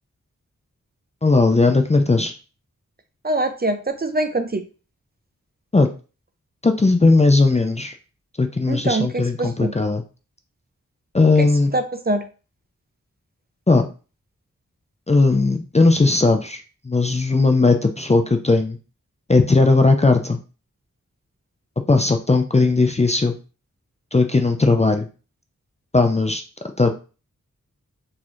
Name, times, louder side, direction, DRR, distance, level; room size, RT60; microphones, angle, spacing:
voice 1, 1.2-2.3 5.7-5.9 6.6-8.0 8.4-10.0 11.1-11.7 13.7-13.9 15.1-18.8 19.3-20.4 21.9-23.3 24.1-25.1 25.9-26.4 26.8-27.0, left 3 dB, 20° left, 6 dB, 0.4 m, -17 dB
voice 2, 3.2-4.6 8.7-9.7 11.4-11.5 11.7-12.2, right 2 dB, 30° right, 8 dB, 0.5 m, -23 dB
4.0 x 2.8 x 2.5 m, 0.34 s
cardioid pair, 40°, 32 cm